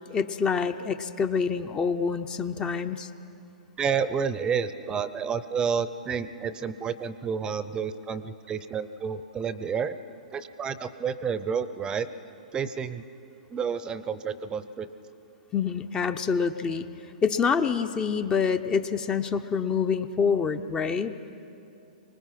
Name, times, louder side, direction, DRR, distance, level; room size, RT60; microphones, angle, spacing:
voice 1, 0.1-3.1 15.5-16.9 17.2-21.3, left 6 dB, 20° left, 10 dB, 0.7 m, -26 dB
voice 2, 3.8-10.0 10.3-12.1 12.5-13.0 13.5-14.9, right 6 dB, 20° right, 14 dB, 0.7 m, -30 dB
25.0 x 19.5 x 5.9 m, 2.8 s
hypercardioid pair, 115°, 4 cm